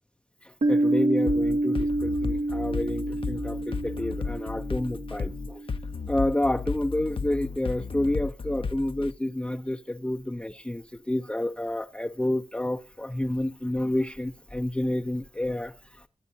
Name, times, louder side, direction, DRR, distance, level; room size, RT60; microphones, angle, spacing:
voice 1, 0.4-5.6 6.1-16.0, left 1 dB, 10° left, 0.5 m, -29 dB
Piano, 0.6-6.0, right 2 dB, 90° right, 1.8 m, -28 dB
sound 1, 1.3-9.1, left 5 dB, 60° left, 0.7 m, -33 dB
25.0 x 8.7 x 2.7 m
wide cardioid pair, 80°, 11 cm